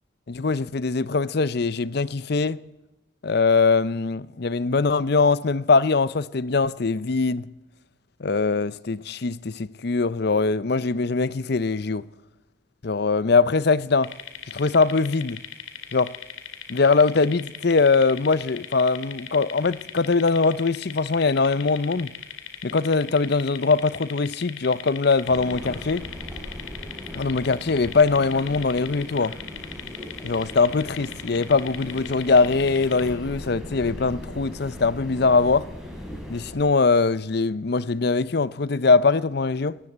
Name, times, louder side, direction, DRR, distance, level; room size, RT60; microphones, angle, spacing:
voice 1, 0.3-2.6 3.2-7.5 8.2-12.1 12.8-14.1 14.5-15.4 15.9-16.1 16.7-22.1 22.6-26.0 27.1-29.4 30.2-35.7 36.3-39.8, left 4 dB, 50° left, 0.6 m, -22 dB
sound 1, 14.0-33.1, left 8 dB, 80° left, 2.9 m, -39 dB
sound 2, 25.2-36.5, equal, ahead, 6.2 m, -39 dB
21.0 x 16.5 x 7.9 m
head